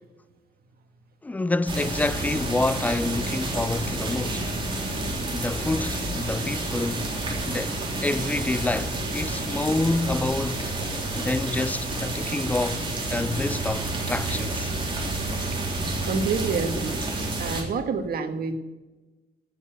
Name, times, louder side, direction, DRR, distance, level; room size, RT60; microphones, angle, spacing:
voice 1, 1.2-4.4 5.3-7.2 7.5-10.7 11.1-14.7, left 2 dB, 10° left, 0.4 m, -28 dB
sound 1, 1.7-17.6, right 2 dB, 30° right, 3.5 m, -29 dB
voice 2, 16.0-17.0 17.4-18.6, right 5 dB, 60° right, 1.7 m, -28 dB
17.0 x 7.1 x 8.1 m
cardioid pair, 135°, 17 cm